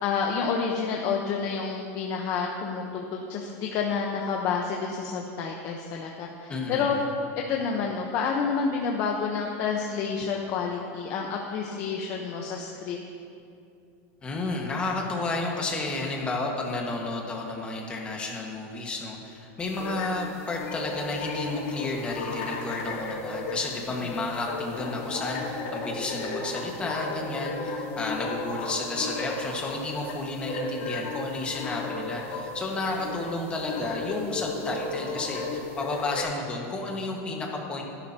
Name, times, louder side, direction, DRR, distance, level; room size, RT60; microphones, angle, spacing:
voice 1, 0.0-7.0 7.4-13.0, left 5 dB, 35° left, 0 dB, 1.0 m, -29 dB
voice 2, 6.5-7.1 14.2-37.8, left 2 dB, 15° left, -1 dB, 1.6 m, -32 dB
sound 1, 19.6-36.2, left 3 dB, 55° left, 3.3 m, -34 dB
26.5 x 11.5 x 2.9 m, 2.6 s
supercardioid pair, 165°, 8 cm